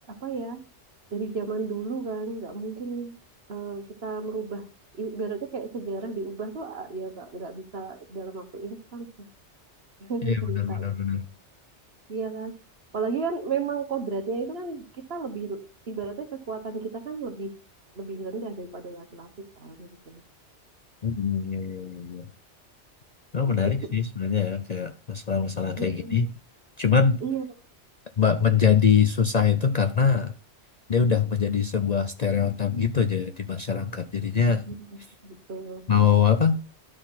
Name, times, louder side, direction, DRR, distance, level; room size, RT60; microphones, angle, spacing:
voice 1, 0.1-0.6 1.1-3.1 3.5-4.6 5.0-9.3 10.0-10.9 12.1-12.5 12.9-17.5 18.0-20.2 23.5-23.9 25.8-26.3 27.2-27.5 34.7-35.8, right 4 dB, 60° right, 7 dB, 1.5 m, -33 dB
voice 2, 10.2-11.2 21.0-22.3 23.3-26.3 26.8-27.2 28.2-30.3 30.9-34.6 35.9-36.6, left 7 dB, 45° left, 8 dB, 0.6 m, -23 dB
12.5 x 4.1 x 4.0 m, 0.38 s
omnidirectional pair, 1.2 m